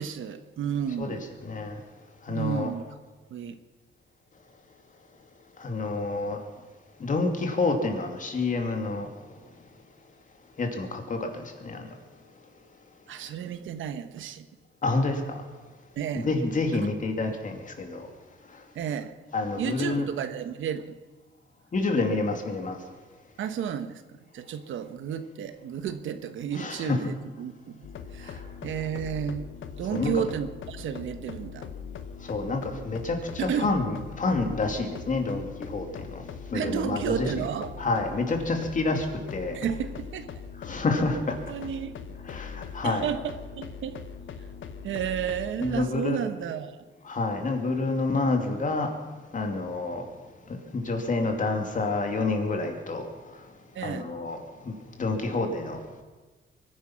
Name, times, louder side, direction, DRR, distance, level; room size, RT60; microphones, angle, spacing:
voice 1, 0.0-1.3 2.3-2.8 3.3-3.6 13.1-14.4 16.0-16.3 18.7-19.1 19.6-21.0 23.4-29.5 29.8-31.7 33.4-33.7 36.5-37.7 39.5-40.3 41.1-42.1 42.8-44.0 44.4-44.5 44.8-46.7 53.7-54.1, right 8 dB, 85° right, 10 dB, 1.2 m, -32 dB
voice 2, 1.0-1.8 2.2-2.7 5.6-6.4 7.0-9.1 10.6-11.9 14.8-15.4 16.1-18.1 19.3-20.1 21.7-22.8 26.5-27.1 28.2-28.4 29.9-30.2 32.2-36.2 36.5-37.3 37.8-39.6 40.6-41.2 42.2-43.1 45.6-46.2 47.0-48.9 49.3-50.1 50.5-53.1 53.8-54.4 54.7-56.0, left 3 dB, 40° left, 4 dB, 2.6 m, -28 dB
sound 1, 27.8-45.9, left 6 dB, 80° left, 1.2 m, -41 dB
23.5 x 10.5 x 5.9 m, 1.3 s
cardioid pair, 115°, 20 cm